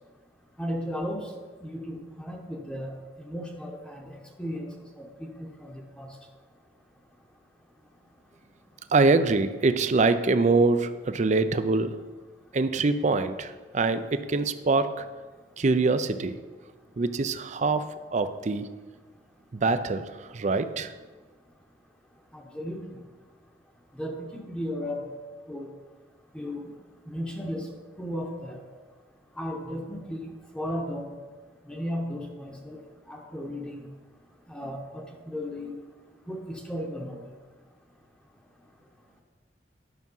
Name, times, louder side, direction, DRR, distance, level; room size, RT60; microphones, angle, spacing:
voice 1, 0.6-1.3 1.6-4.7 5.0-6.2 22.3-22.8 23.9-25.2 25.5-25.7 26.3-26.7 27.1-27.7 28.0-28.6 29.4-31.1 31.6-32.8 33.1-33.9 34.5-35.7 36.3-37.2, equal, 5° left, 0 dB, 0.9 m, -35 dB
voice 2, 8.9-12.0 12.5-15.0 15.6-16.4 17.0-18.7 19.6-20.9, right 3 dB, 40° right, 11 dB, 0.5 m, -24 dB
9.7 x 5.9 x 5.4 m, 1.4 s
head